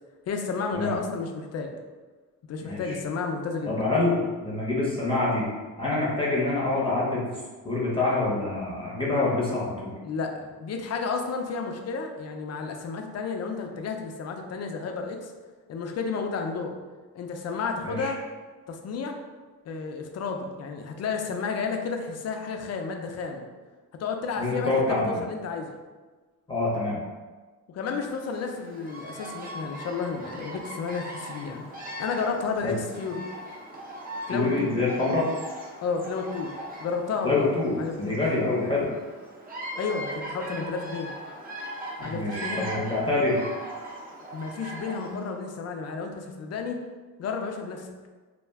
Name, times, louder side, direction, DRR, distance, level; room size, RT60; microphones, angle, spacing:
voice 1, 0.3-1.7 2.5-3.8 10.0-15.3 15.7-16.7 17.1-18.2 18.7-19.2 19.7-23.5 24.0-25.8 27.7-33.2 34.3-34.7 35.8-36.5 36.8-38.2 39.8-41.1 42.0-42.6 44.3-46.8 47.2-47.9, left 5 dB, 45° left, 4 dB, 0.4 m, -32 dB
voice 2, 2.7-3.0 3.7-5.4 5.8-7.2 7.6-9.9 17.8-18.1 24.4-25.1 26.5-27.0 32.6-32.8 34.3-35.2 37.2-38.9 42.0-43.5, left 2 dB, 15° left, -6 dB, 0.7 m, -26 dB
Bird vocalization bird call bird song, 28.1-45.3, right 1 dB, 25° right, 0.6 m, -39 dB
2.3 x 2.1 x 3.4 m, 1.3 s
cardioid pair, 95°, 38 cm